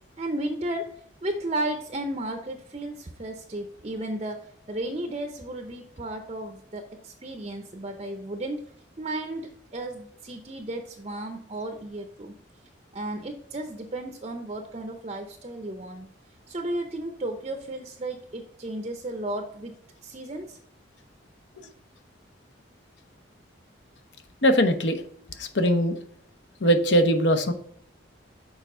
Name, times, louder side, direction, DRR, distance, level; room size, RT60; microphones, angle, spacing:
voice 1, 0.2-0.9 1.2-4.4 4.7-8.7 9.0-12.3 12.9-16.1 16.5-19.7 20.0-20.6, right 1 dB, 30° right, 5 dB, 0.6 m, -34 dB
voice 2, 24.4-25.0 25.4-26.0 26.6-27.5, equal, 65° left, 8 dB, 0.8 m, -21 dB
6.6 x 4.6 x 3.7 m, 0.65 s
head